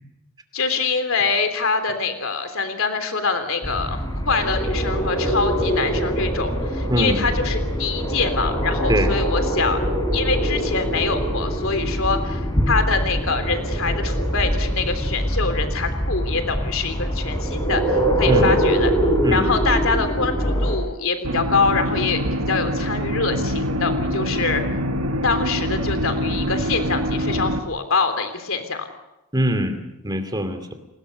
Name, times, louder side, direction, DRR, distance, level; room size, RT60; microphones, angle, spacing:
voice 1, 0.5-9.8 10.1-18.9 19.3-22.2 22.5-24.6 25.2-28.9, left 4 dB, 65° left, 8 dB, 3.4 m, -24 dB
sound 1, 3.6-20.8, equal, 20° left, 4.2 m, -23 dB
voice 2, 6.9-7.2 8.9-9.1 18.3-18.6 19.2-19.5 29.3-30.7, equal, 20° right, 8 dB, 2.7 m, -23 dB
sound 2, 21.2-27.6, equal, 75° right, 1.7 m, -24 dB
29.5 x 20.5 x 6.7 m, 0.96 s
head